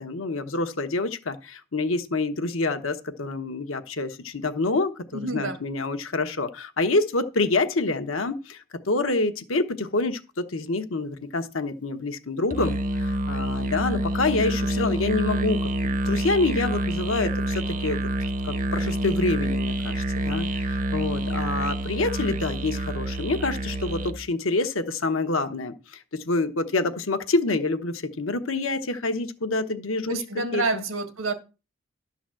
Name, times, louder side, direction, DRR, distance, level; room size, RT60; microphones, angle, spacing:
voice 1, 0.0-18.0 18.4-30.2 30.5-30.8, left 3 dB, 85° left, 1.1 m, -27 dB
voice 2, 5.1-5.6 30.1-31.3, right 3 dB, 85° right, 1.6 m, -28 dB
Musical instrument, 12.5-24.2, right 1 dB, 40° right, 0.6 m, -27 dB
11.5 x 4.0 x 7.5 m
head